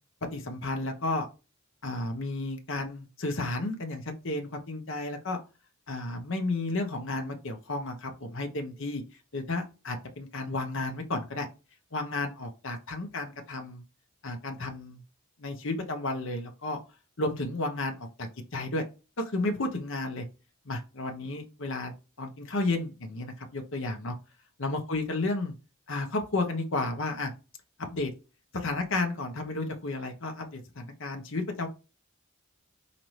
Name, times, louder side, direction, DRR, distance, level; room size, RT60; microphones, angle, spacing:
voice 1, 0.3-1.3 1.8-5.4 5.9-9.0 9.3-11.5 11.9-13.8 14.2-15.0 15.4-16.8 17.2-18.8 19.2-20.3 20.7-21.9 22.2-24.1 24.6-25.5 25.9-27.3 27.9-28.1 28.5-31.7, left 2 dB, 65° left, 4 dB, 0.9 m, -32 dB
5.1 x 2.8 x 3.1 m, 0.31 s
head